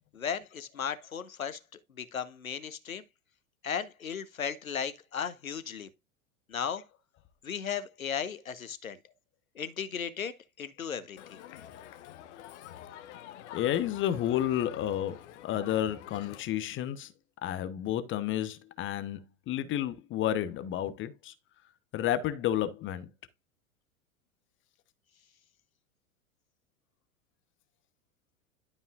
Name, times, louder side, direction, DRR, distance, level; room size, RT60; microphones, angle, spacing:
voice 1, 0.1-1.6 2.0-3.0 3.6-5.9 6.5-6.8 7.4-9.0 9.6-10.3 10.6-11.4, left 7 dB, 80° left, 1.2 m, -35 dB
Crowd, 11.2-16.4, left 11 dB, 55° left, 1.2 m, -47 dB
voice 2, 13.5-15.2 15.4-17.1 17.4-19.2 19.5-21.3 21.9-23.1, left 11 dB, 30° left, 0.9 m, -31 dB
12.0 x 5.3 x 2.4 m
figure-of-eight pair, 90°, 41 cm